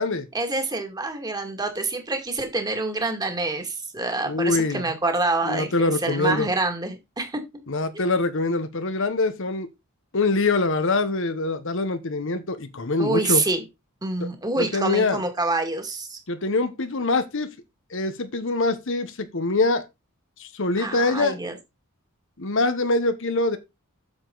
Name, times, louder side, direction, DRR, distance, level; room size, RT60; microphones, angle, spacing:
voice 1, 0.3-7.4 13.0-13.6 14.0-16.2 20.8-21.6, right 2 dB, 20° right, 2.1 m, -26 dB
voice 2, 4.2-4.8 5.4-6.5 7.7-9.7 10.1-13.4 14.2-14.3 14.6-15.2 16.3-17.5 17.9-19.8 20.4-21.4 22.4-23.6, left 3 dB, 60° left, 1.1 m, -24 dB
8.8 x 7.1 x 4.0 m
head